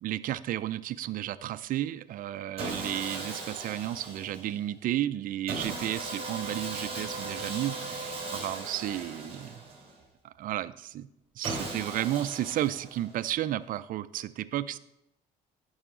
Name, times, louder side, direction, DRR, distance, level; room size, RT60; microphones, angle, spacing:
voice 1, 0.0-9.6 10.2-11.1 11.4-14.8, right 13 dB, 55° right, 14 dB, 0.4 m, -33 dB
Sawing, 2.6-4.6 5.5-10.0 11.4-13.2, right 3 dB, 35° right, 3.4 m, -38 dB
11.0 x 5.6 x 3.7 m, 0.84 s
cardioid pair, 110°, 17 cm